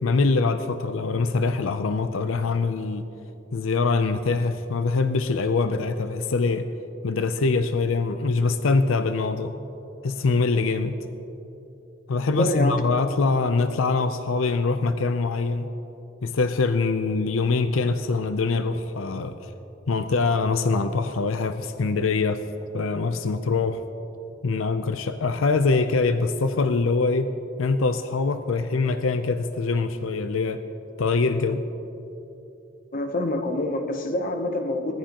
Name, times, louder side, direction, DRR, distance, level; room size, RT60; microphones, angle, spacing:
voice 1, 0.0-3.0 3.5-6.7 7.0-9.5 10.0-11.0 12.1-15.7 16.2-19.5 19.9-22.4 22.7-23.8 24.4-27.3 27.6-30.6 31.0-31.6, left 4 dB, 85° left, 10 dB, 0.5 m, -23 dB
voice 2, 12.3-12.8 32.9-35.0, left 1 dB, 45° left, 6 dB, 0.9 m, -26 dB
20.0 x 14.5 x 3.0 m, 3.0 s
head